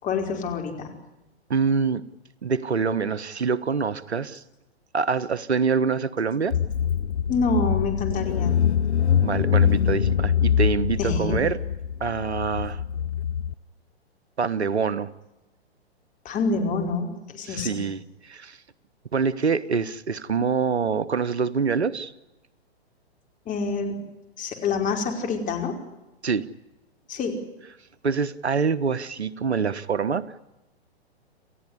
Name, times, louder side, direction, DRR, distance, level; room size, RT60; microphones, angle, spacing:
voice 1, 0.0-0.9 7.3-8.5 11.0-11.4 16.2-17.8 23.4-23.9 24.4-25.8 27.1-27.4, left 4 dB, 25° left, 4 dB, 5.1 m, -27 dB
voice 2, 1.5-2.0 2.4-4.4 4.9-6.6 9.2-11.6 12.0-12.8 14.4-15.1 17.5-18.6 19.1-22.1 26.2-26.5 28.0-30.4, right 5 dB, 85° right, 17 dB, 1.3 m, -25 dB
Car / Engine, 6.5-13.5, left 8 dB, 85° left, 0.8 m, -24 dB
29.0 x 15.0 x 9.7 m, 0.99 s
figure-of-eight pair, 115°, 32 cm